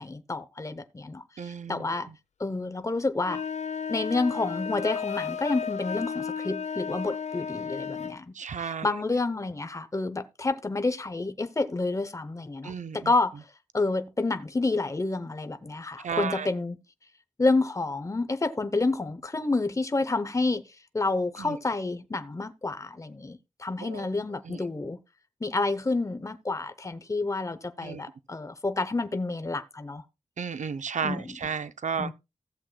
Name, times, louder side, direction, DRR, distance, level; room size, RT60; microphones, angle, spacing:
voice 1, 0.0-2.1 2.4-3.4 3.9-13.4 13.7-16.8 17.4-20.6 20.9-25.0 25.4-30.0 31.0-31.4 32.0-32.1, left 3 dB, 25° left, 0.7 m, -29 dB
voice 2, 1.4-1.9 8.3-8.9 12.6-13.1 16.0-16.5 21.4-21.6 23.8-24.1 24.5-24.6 27.8-28.0 30.4-32.1, right 6 dB, 85° right, 0.5 m, -33 dB
sound 1, 3.2-8.2, left 6 dB, 70° left, 0.4 m, -33 dB
16.5 x 7.4 x 2.2 m
wide cardioid pair, 90°, 12 cm